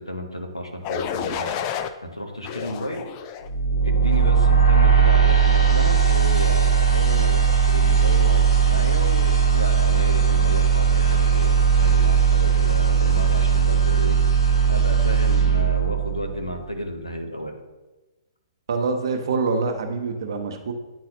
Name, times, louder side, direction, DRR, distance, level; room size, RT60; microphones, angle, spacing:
voice 1, 0.0-1.6 2.0-3.0 3.8-14.2 14.7-17.5, equal, 90° left, 3 dB, 0.9 m, -32 dB
sound 1, 0.8-1.9 2.4-3.5 4.1-4.4, left 8 dB, 30° left, 0.4 m, -30 dB
sound 2, 3.5-16.5, right 6 dB, 65° left, 1.2 m, -18 dB
voice 2, 18.7-20.7, right 4 dB, 55° right, 5 dB, 0.8 m, -25 dB
9.3 x 4.0 x 2.9 m, 1.1 s
figure-of-eight pair, 120°, 3 cm